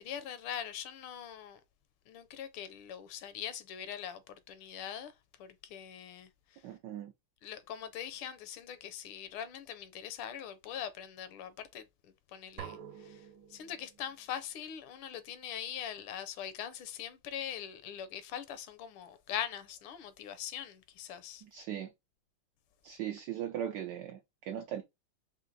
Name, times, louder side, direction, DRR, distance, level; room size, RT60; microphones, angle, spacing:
voice 1, 0.0-1.6 2.1-5.1 5.4-6.6 7.4-13.3 13.5-21.4, left 9 dB, 75° left, 1.4 m, -42 dB
voice 2, 6.6-7.1 21.4-21.9 22.8-24.8, right 10 dB, 85° right, 0.9 m, -39 dB
sound 1, 12.6-14.4, right 9 dB, 70° right, 1.3 m, -48 dB
4.4 x 2.5 x 3.8 m
omnidirectional pair, 2.4 m